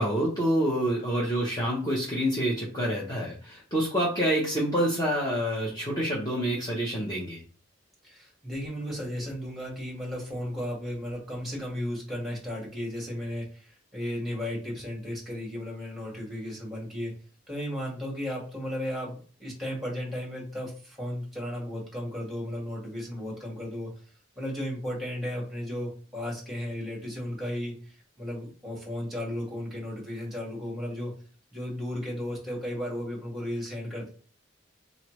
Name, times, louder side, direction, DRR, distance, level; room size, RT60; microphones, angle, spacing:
voice 1, 0.0-7.4, equal, 20° left, -4 dB, 0.8 m, -27 dB
voice 2, 8.0-17.1 17.5-23.9 24.3-31.1 31.5-34.1, left 1 dB, ahead, -2 dB, 1.6 m, -34 dB
3.9 x 3.2 x 3.0 m, 0.40 s
head